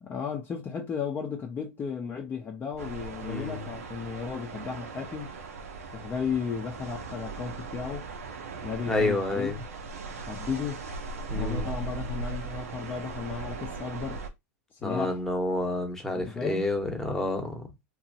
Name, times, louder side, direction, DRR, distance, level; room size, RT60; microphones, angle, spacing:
voice 1, 0.0-5.3 5.9-8.1 8.6-9.5 10.3-10.8 11.3-14.2 14.7-15.2 16.2-16.6, left 6 dB, 25° left, 0.6 m, -34 dB
sound 1, 2.8-14.3, right 4 dB, 75° right, 0.7 m, -38 dB
voice 2, 3.2-3.7 8.9-9.6 11.3-11.7 14.8-17.7, left 2 dB, 5° left, 1.0 m, -29 dB
2.8 x 2.3 x 2.7 m
hypercardioid pair, 90°, 8 cm